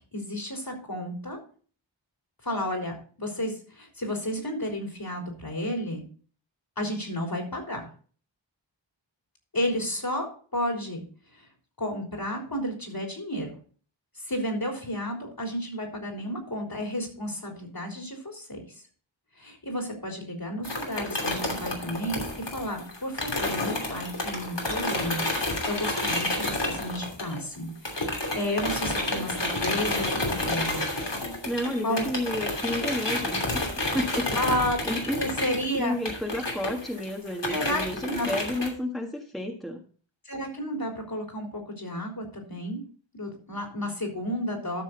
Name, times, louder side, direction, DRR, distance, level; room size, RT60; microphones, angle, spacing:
voice 1, 0.1-1.4 2.4-6.0 6.8-7.8 9.5-11.0 11.4-11.5 11.8-13.5 14.3-18.6 19.4-25.2 25.6-30.8 31.8-32.0 34.4-34.8 35.2-35.9 37.5-38.3 40.3-42.8 43.1-44.8, equal, 50° left, 1 dB, 3.8 m, -32 dB
sound 1, 20.6-27.6 27.8-38.7, left 1 dB, 65° left, 3.0 m, -30 dB
voice 2, 31.4-33.4 33.9-34.6 34.8-35.3 35.7-39.8, left 1 dB, ahead, 1 dB, 1.5 m, -31 dB
13.0 x 6.2 x 3.9 m, 0.42 s
wide cardioid pair, 45°, 46 cm